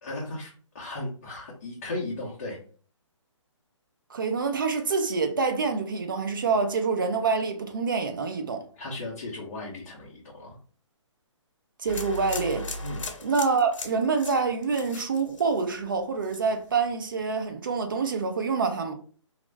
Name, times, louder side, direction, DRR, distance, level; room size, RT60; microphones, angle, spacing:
voice 1, 0.0-2.6 8.8-10.6 12.8-13.1, left 2 dB, 30° left, 0.6 m, -36 dB
voice 2, 4.1-8.6 11.8-12.7 13.2-18.9, right 4 dB, 40° right, 0.4 m, -26 dB
sound 1, 11.9-15.9 16.2-16.7, left 2 dB, 80° left, 0.6 m, -38 dB
2.4 x 2.0 x 3.2 m
hypercardioid pair, 170°, 16 cm